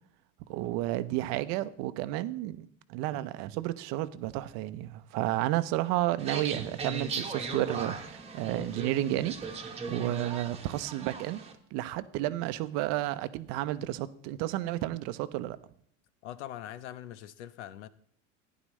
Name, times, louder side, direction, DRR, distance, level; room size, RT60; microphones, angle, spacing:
voice 1, 0.5-9.4 9.9-11.4 11.7-15.6, right 15 dB, 50° right, 13 dB, 0.7 m, -32 dB
sound 1, 6.2-11.5, right 4 dB, 20° right, 1.2 m, -38 dB
voice 2, 16.2-17.9, left 12 dB, 85° left, 15 dB, 0.9 m, -42 dB
15.0 x 10.5 x 3.2 m, 0.63 s
supercardioid pair, 135°, 34 cm